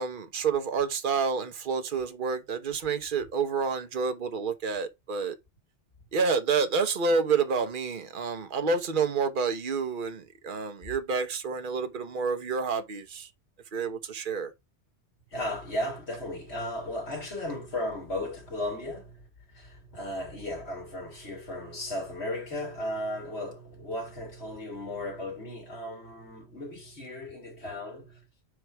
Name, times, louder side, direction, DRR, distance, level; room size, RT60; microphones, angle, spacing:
voice 1, 0.0-5.3 6.1-13.3 13.7-14.5, right 5 dB, 50° right, 1.0 m, -29 dB
voice 2, 15.3-19.3 19.5-28.2, left 1 dB, 70° left, 2.7 m, -35 dB
4.9 x 4.6 x 4.5 m
omnidirectional pair, 1.2 m